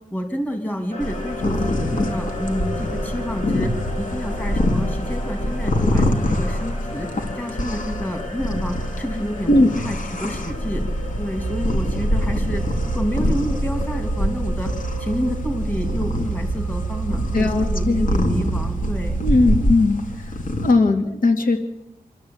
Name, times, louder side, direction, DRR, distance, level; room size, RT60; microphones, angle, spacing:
voice 1, 0.1-7.1 7.3-9.5 9.8-10.8 11.2-14.7 15.0-19.2, equal, 15° left, 4 dB, 3.0 m, -29 dB
sound 1, 0.9-18.4, left 1 dB, 45° left, 6.0 m, -36 dB
sound 2, 1.0-20.7, left 1 dB, 65° left, 2.8 m, -25 dB
sound 3, 11.4-19.8, right 6 dB, 20° right, 0.9 m, -29 dB
voice 2, 17.3-18.1 19.2-20.0 20.6-21.6, left 2 dB, 85° left, 3 dB, 2.7 m, -18 dB
27.0 x 13.0 x 8.8 m, 0.84 s
wide cardioid pair, 130°, 14 cm